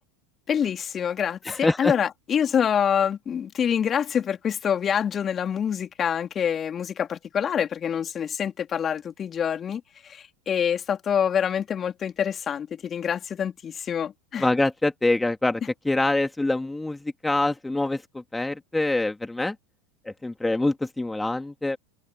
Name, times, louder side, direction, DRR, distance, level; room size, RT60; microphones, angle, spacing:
voice 1, 0.5-14.5, left 8 dB, 30° left, 3.0 m, -26 dB
voice 2, 1.5-1.9 14.4-19.6 20.1-21.8, left 2 dB, 10° left, 2.1 m, -25 dB
open air
hypercardioid pair, 90°, 0 cm